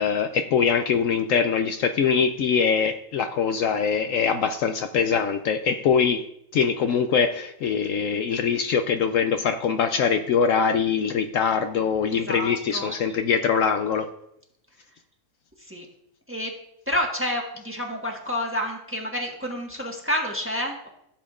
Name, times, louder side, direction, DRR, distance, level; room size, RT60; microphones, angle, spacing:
voice 1, 0.0-6.2 6.5-14.1, left 6 dB, 70° left, 7 dB, 0.9 m, -23 dB
voice 2, 12.1-13.0 15.6-15.9 16.3-16.5 16.9-20.9, left 1 dB, 10° right, 0 dB, 1.3 m, -29 dB
15.0 x 7.2 x 2.5 m, 0.76 s
omnidirectional pair, 1.5 m